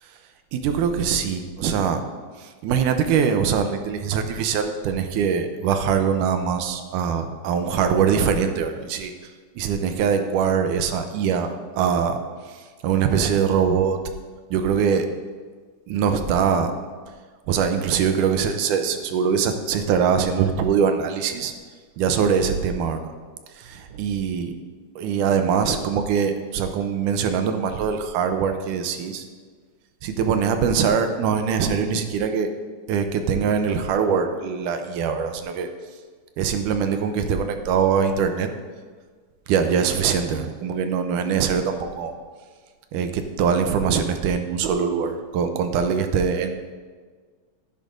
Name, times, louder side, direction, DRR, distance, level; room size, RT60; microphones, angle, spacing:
voice 1, 0.5-2.0 2.4-9.1 9.6-12.2 12.8-14.0 14.5-15.1 15.9-16.7 17.5-21.5 22.0-23.1 23.6-24.5 25.0-29.3 30.0-32.5 32.9-35.7 36.4-38.5 39.5-42.1 42.9-46.7, right 7 dB, 90° right, 7 dB, 2.2 m, -22 dB
14.5 x 10.0 x 2.6 m, 1.5 s
omnidirectional pair, 3.6 m